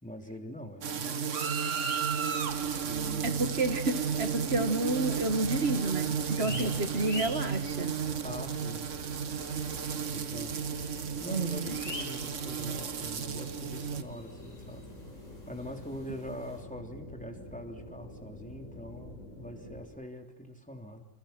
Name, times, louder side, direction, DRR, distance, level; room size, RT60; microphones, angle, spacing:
voice 1, 0.0-2.3 2.8-3.6 6.4-6.8 8.2-8.9 10.1-10.6 10.9-14.9 15.5-21.0, equal, 5° left, 4 dB, 3.5 m, -43 dB
sound 1, 0.8-14.0, right 7 dB, 70° right, 1.6 m, -33 dB
sound 2, 1.3-16.6, left 1 dB, 30° left, 7.2 m, -48 dB
sound 3, 2.4-19.9, left 1 dB, 85° left, 6.8 m, -47 dB
voice 2, 3.2-7.9 11.3-11.8, right 2 dB, 55° right, 10 dB, 1.7 m, -30 dB
29.0 x 28.5 x 6.0 m, 0.80 s
omnidirectional pair, 1.3 m